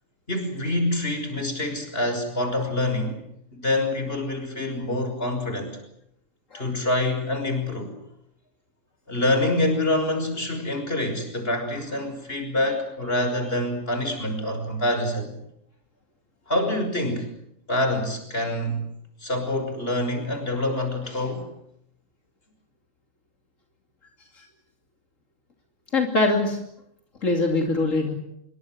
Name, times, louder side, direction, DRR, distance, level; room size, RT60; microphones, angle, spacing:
voice 1, 0.3-3.2 3.6-5.8 6.5-7.9 9.1-15.3 16.5-17.3 17.7-18.8 19.2-21.5, left 1 dB, 50° left, 6 dB, 6.4 m, -26 dB
voice 2, 25.9-26.6 27.2-28.1, left 2 dB, 80° left, 2 dB, 3.3 m, -23 dB
26.5 x 23.0 x 8.0 m, 0.78 s
omnidirectional pair, 1.3 m